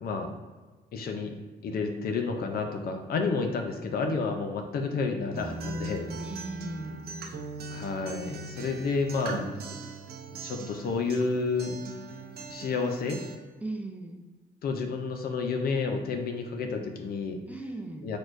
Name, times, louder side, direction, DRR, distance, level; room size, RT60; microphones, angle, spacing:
voice 1, 0.0-0.3 0.9-1.3 1.6-6.1 7.7-9.5 10.3-11.8 12.5-13.2 14.6-17.4 18.0-18.2, left 4 dB, 65° left, 5 dB, 0.6 m, -30 dB
Acoustic guitar, 5.4-13.3, right 3 dB, 70° right, 0.6 m, -40 dB
voice 2, 6.2-7.0 13.6-14.2 17.5-18.1, right 2 dB, 10° right, 3 dB, 0.5 m, -38 dB
4.7 x 4.2 x 2.6 m, 1.4 s
cardioid pair, 100°, 17 cm